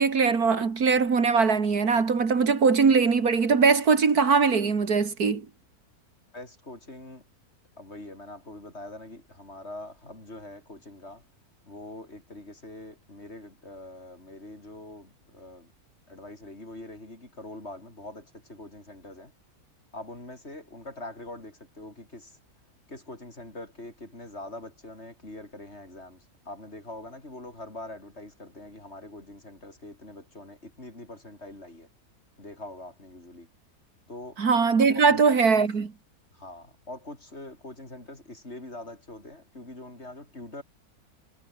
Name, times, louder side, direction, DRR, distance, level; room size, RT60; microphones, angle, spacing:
voice 1, 0.0-5.5 34.4-35.9, right 5 dB, 75° right, 2.7 m, -21 dB
voice 2, 6.3-7.2 7.8-11.2 11.7-15.7 16.1-19.3 19.9-22.4 22.9-31.9 32.4-33.5 34.1-34.4 34.9-35.7 36.3-40.6, left 2 dB, 45° left, 5.7 m, -43 dB
omnidirectional pair, 1.6 m